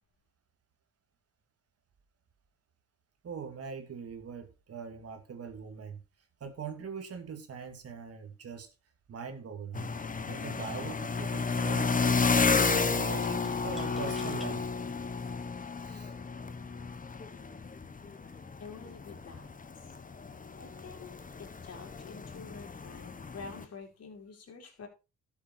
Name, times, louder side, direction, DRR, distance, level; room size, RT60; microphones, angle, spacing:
voice 1, 3.2-6.0 6.4-8.7 9.1-9.9 10.3-12.2 12.6-14.7 15.8-16.1, right 6 dB, 50° right, 2.5 m, -42 dB
sound 1, 9.7-23.6, left 4 dB, 25° left, 1.3 m, -32 dB
sound 2, 13.4-14.5 15.2-15.3 16.2-16.6, left 1 dB, ahead, 3.3 m, -53 dB
voice 2, 18.6-19.8 20.6-21.1 21.4-24.9, left 5 dB, 55° left, 4.2 m, -48 dB
12.5 x 7.0 x 4.6 m
cardioid pair, 90°, 30 cm